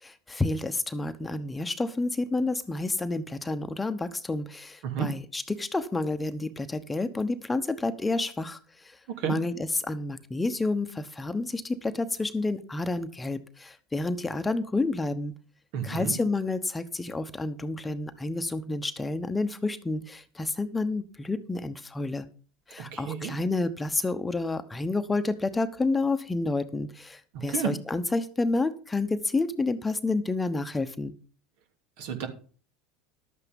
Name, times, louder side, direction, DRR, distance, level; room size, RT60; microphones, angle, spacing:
voice 1, 0.0-9.0 9.3-15.3 15.8-22.3 22.7-31.1, left 3 dB, 15° left, 10 dB, 1.0 m, -29 dB
voice 2, 15.7-16.1 22.8-23.3 27.3-27.7 32.0-32.3, right 8 dB, 65° right, 5 dB, 2.7 m, -31 dB
12.0 x 8.3 x 5.3 m, 0.40 s
hypercardioid pair, 95°, 0 cm